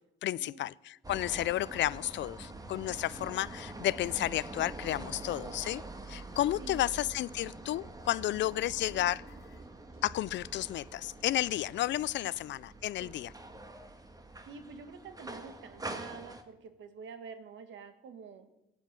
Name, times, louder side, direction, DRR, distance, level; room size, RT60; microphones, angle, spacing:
voice 1, 0.2-5.8 6.1-9.4 10.0-13.3, left 14 dB, 65° left, 22 dB, 0.4 m, -32 dB
sound 1, 1.0-16.4, right 2 dB, 20° right, 1.5 m, -45 dB
sound 2, 2.6-12.7, right 3 dB, 90° right, 2.7 m, -66 dB
voice 2, 14.4-18.5, right 5 dB, 75° right, 9 dB, 1.6 m, -48 dB
17.0 x 8.1 x 7.4 m, 0.95 s
cardioid pair, 90°, 20 cm